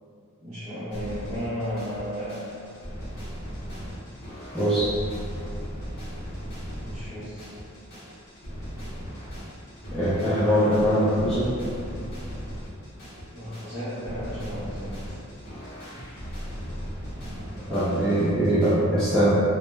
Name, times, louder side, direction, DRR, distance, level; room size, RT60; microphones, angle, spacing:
voice 1, 0.4-2.4 6.8-7.5 13.3-15.0, equal, 35° right, -16 dB, 0.7 m, -34 dB
sound 1, 0.9-18.7, equal, 50° left, 0.7 m, -37 dB
voice 2, 4.5-5.0 9.9-11.5 17.7-19.4, equal, 5° left, -14 dB, 0.4 m, -22 dB
2.2 x 2.0 x 3.1 m, 2.5 s
head